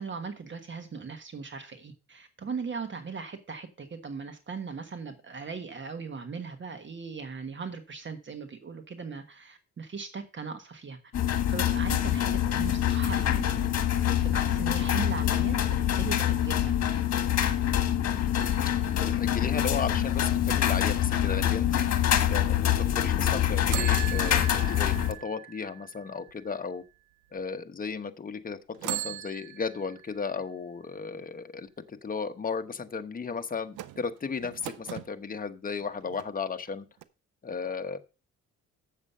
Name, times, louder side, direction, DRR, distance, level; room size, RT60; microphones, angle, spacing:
voice 1, 0.0-11.0 11.5-13.5 14.2-16.8, right 5 dB, 40° right, 1.4 m, -39 dB
sound 1, 11.1-25.1, left 11 dB, 55° left, 1.5 m, -25 dB
sound 2, 18.3-20.2 23.7-26.8 27.4-27.5 28.7-30.5 33.7-35.1 35.8-36.7 37.0-37.1, right 15 dB, 90° right, 0.7 m, -40 dB
voice 2, 18.4-21.9 22.3-26.8 27.3-36.9 37.4-38.0, left 5 dB, 30° left, 1.1 m, -35 dB
7.6 x 7.2 x 5.5 m
cardioid pair, 90°, 30 cm